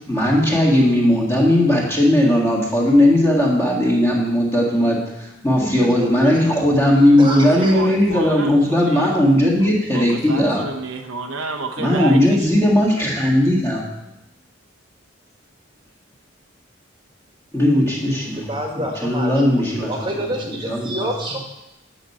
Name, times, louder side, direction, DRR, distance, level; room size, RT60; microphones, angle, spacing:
voice 1, 0.1-10.6 11.8-13.9 17.5-18.5 19.0-19.9 20.2-20.3 20.6-21.1, left 1 dB, 15° left, -3 dB, 1.8 m, -17 dB
voice 2, 5.6-6.4 6.9-7.7 18.3-21.4, equal, 25° right, 1 dB, 1.4 m, -28 dB
voice 3, 7.3-9.2 9.6-12.6 20.4-20.6, right 4 dB, 90° right, 5 dB, 1.0 m, -31 dB
9.0 x 6.1 x 5.5 m, 0.93 s
head